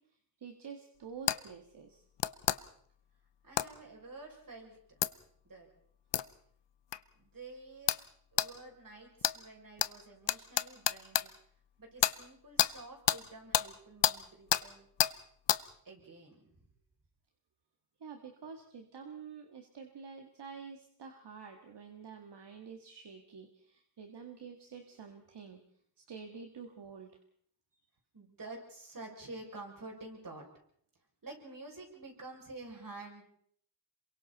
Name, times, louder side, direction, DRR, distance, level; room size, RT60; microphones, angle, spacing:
voice 1, 0.1-2.0 18.0-25.6 26.1-27.1, right 6 dB, 75° right, 5 dB, 2.0 m, -48 dB
sound 1, 1.3-1.4 2.2-2.6 3.6-3.7 5.0-5.1 6.1-6.3 6.9-7.0 7.9-8.0 8.4-8.5 9.2-9.4 9.8-9.9 10.3-11.3 12.0-12.2 12.6-12.7 13.1-13.2 13.5-13.7 14.0-14.2 14.5-14.6 15.0-15.1 15.5-15.6, left 11 dB, 80° left, 0.8 m, -28 dB
voice 2, 3.4-5.0 5.4-5.7 7.1-8.0 8.3-11.3 11.8-14.9 15.8-16.7 28.1-30.4 31.2-33.3, right 2 dB, 50° right, 1 dB, 6.7 m, -49 dB
27.0 x 23.5 x 4.2 m, 0.63 s
cardioid pair, 70°, 42 cm